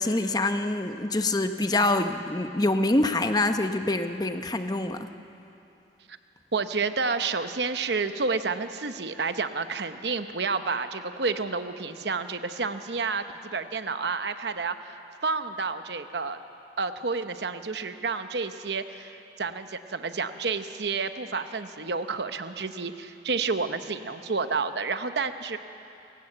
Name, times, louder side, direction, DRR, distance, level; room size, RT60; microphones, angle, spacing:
voice 1, 0.0-5.1, left 2 dB, 20° left, 7 dB, 0.8 m, -25 dB
voice 2, 6.5-16.4 16.8-25.6, right 4 dB, 75° right, 9 dB, 0.9 m, -30 dB
28.5 x 16.5 x 7.9 m, 2.8 s
head